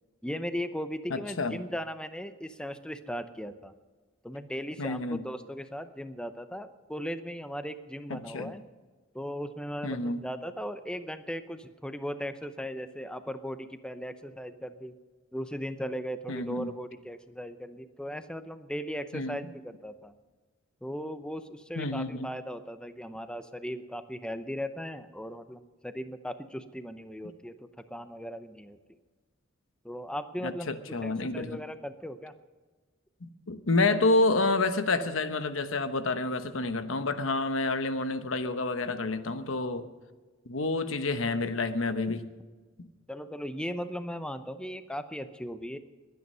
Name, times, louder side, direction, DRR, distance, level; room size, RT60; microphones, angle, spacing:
voice 1, 0.2-3.7 4.2-8.6 9.1-14.9 15.3-20.1 20.8-27.6 27.9-28.8 29.8-32.3 43.1-45.8, equal, 5° left, 10 dB, 0.7 m, -37 dB
voice 2, 1.1-1.6 4.8-5.2 8.1-8.5 9.8-10.2 16.3-16.7 19.1-19.4 21.8-22.3 30.4-31.6 33.2-39.9 40.4-42.3 42.8-42.9, left 2 dB, 80° left, 10 dB, 1.1 m, -29 dB
21.5 x 9.5 x 5.5 m, 1.3 s
head